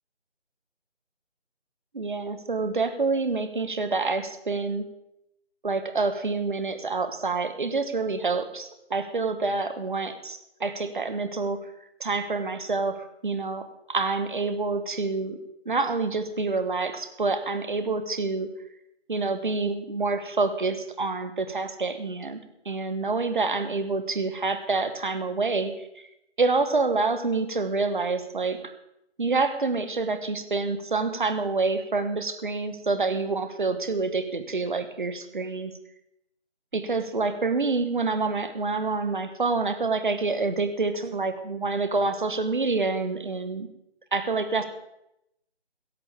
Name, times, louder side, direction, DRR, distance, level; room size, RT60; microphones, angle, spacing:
voice 1, 1.9-4.8 5.6-11.6 12.0-15.4 15.6-18.5 19.1-22.4 22.6-26.1 26.4-28.6 29.2-35.7 36.7-43.7 44.1-44.6, right 3 dB, 45° right, 10 dB, 1.4 m, -27 dB
16.5 x 14.0 x 3.5 m, 0.83 s
figure-of-eight pair, 160°, 34 cm